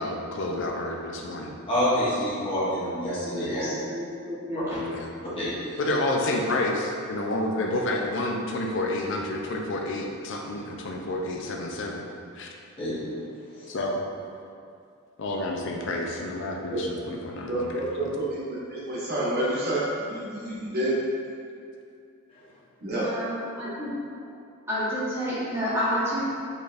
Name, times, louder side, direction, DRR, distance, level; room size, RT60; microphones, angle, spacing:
voice 1, 0.0-1.5 4.7-5.1 5.8-12.0 12.3-12.5 13.7-14.0 15.2-17.7, left 1 dB, 55° left, 1 dB, 0.4 m, -29 dB
voice 2, 1.7-3.6 5.3-5.5 12.8-12.9, equal, 25° left, -11 dB, 1.0 m, -26 dB
voice 3, 3.5-4.8 23.0-23.9 24.7-26.2, equal, 10° right, -11 dB, 0.9 m, -30 dB
voice 4, 17.5-21.0 22.8-23.1, right 1 dB, 45° right, -8 dB, 1.0 m, -29 dB
4.2 x 3.3 x 2.5 m, 2.4 s
head